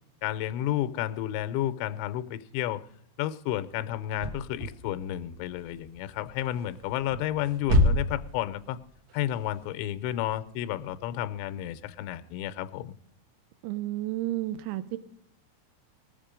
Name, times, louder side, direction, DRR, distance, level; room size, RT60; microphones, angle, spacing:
voice 1, 0.2-2.8 3.2-8.8 9.1-12.9, left 12 dB, 85° left, 12 dB, 2.8 m, -31 dB
sound 1, 4.1-12.0, left 1 dB, 60° right, 2.0 m, -30 dB
voice 2, 13.6-15.0, right 15 dB, 85° right, 11 dB, 2.3 m, -31 dB
20.0 x 7.3 x 5.0 m, 0.75 s
omnidirectional pair, 5.4 m